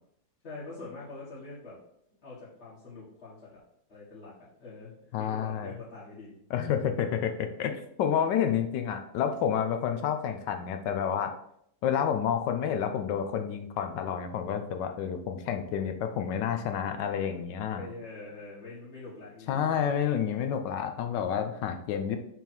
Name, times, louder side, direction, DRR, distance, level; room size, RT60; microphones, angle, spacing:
voice 1, 0.4-1.8 2.2-3.6 3.9-6.4 17.7-19.9, left 3 dB, 35° left, -10 dB, 1.8 m, -44 dB
voice 2, 5.1-5.7 6.5-11.3 11.8-17.9 19.5-22.2, left 8 dB, 75° left, 8 dB, 1.2 m, -29 dB
6.1 x 3.6 x 4.4 m, 0.72 s
omnidirectional pair, 2.1 m